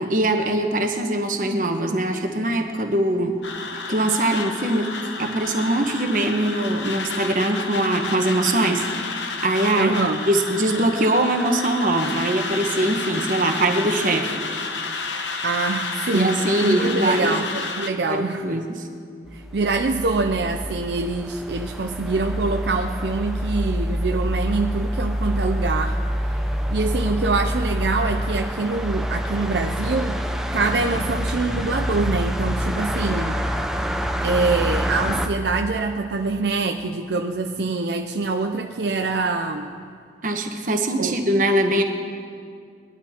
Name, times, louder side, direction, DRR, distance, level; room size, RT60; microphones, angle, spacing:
voice 1, 0.0-3.4 3.9-4.9 5.2-8.9 9.4-10.0 10.3-14.4 16.1-17.4 17.9-18.8 40.2-41.8, right 1 dB, 45° right, 4 dB, 1.1 m, -22 dB
sound 1, 3.4-17.9, left 4 dB, 85° left, 1.0 m, -31 dB
voice 2, 9.8-10.2 15.4-18.8 19.3-26.0 26.7-33.4 34.2-39.8 41.0-41.2, right 3 dB, 70° right, 5 dB, 0.5 m, -25 dB
sound 2, 19.3-35.3, equal, ahead, 0.5 m, -26 dB
20.0 x 11.5 x 4.4 m, 2.2 s
head